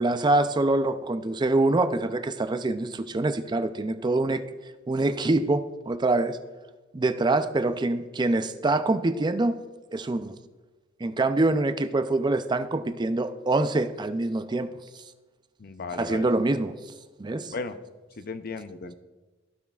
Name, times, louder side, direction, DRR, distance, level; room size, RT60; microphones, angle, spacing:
voice 1, 0.0-4.4 4.9-6.4 6.9-9.6 9.9-10.4 11.0-14.7 15.9-16.8 17.2-17.5, right 2 dB, 25° right, 11 dB, 0.4 m, -25 dB
voice 2, 15.6-16.3 17.5-17.8 18.2-18.9, left 4 dB, 50° left, 10 dB, 0.5 m, -35 dB
16.0 x 5.9 x 2.4 m, 1.2 s
head